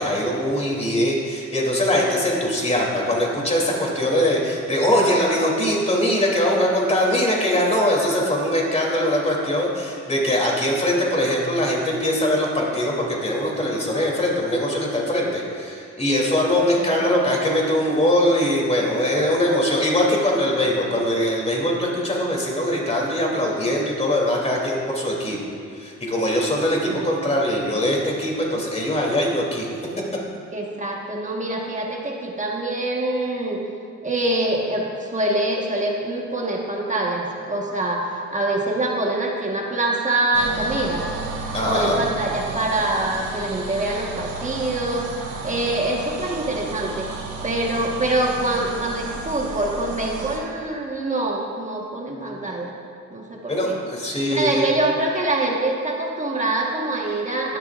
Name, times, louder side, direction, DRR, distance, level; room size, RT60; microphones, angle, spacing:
voice 1, 0.0-25.4 25.7-29.7 41.5-42.0 53.5-54.7, left 1 dB, 20° left, -2 dB, 3.0 m, -22 dB
voice 2, 16.8-17.1 25.1-25.2 26.8-27.3 30.5-33.6 34.0-41.1 41.7-47.1 47.4-52.8 53.1-53.8 54.3-57.6, right 2 dB, 25° right, -1 dB, 1.5 m, -25 dB
sound 1, 40.3-50.4, right 3 dB, 85° right, 2.5 m, -33 dB
16.5 x 12.0 x 2.5 m, 2.3 s
cardioid pair, 90°, 30 cm